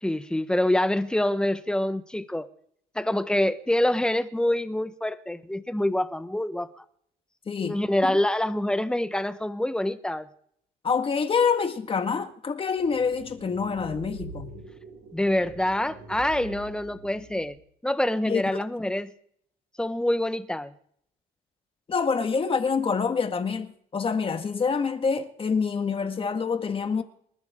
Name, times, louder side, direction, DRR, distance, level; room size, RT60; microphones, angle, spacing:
voice 1, 0.0-2.5 2.9-6.7 7.7-10.3 15.1-17.6 17.8-19.1 19.8-20.7, left 1 dB, 5° left, 1.2 m, -26 dB
voice 2, 7.5-7.8 8.1-8.2 10.8-14.5 18.3-18.4 21.9-27.0, left 5 dB, 30° left, 1.8 m, -26 dB
sound 1, 12.7-17.6, right 2 dB, 65° right, 5.0 m, -44 dB
27.0 x 13.5 x 3.7 m
cardioid pair, 110°, 17 cm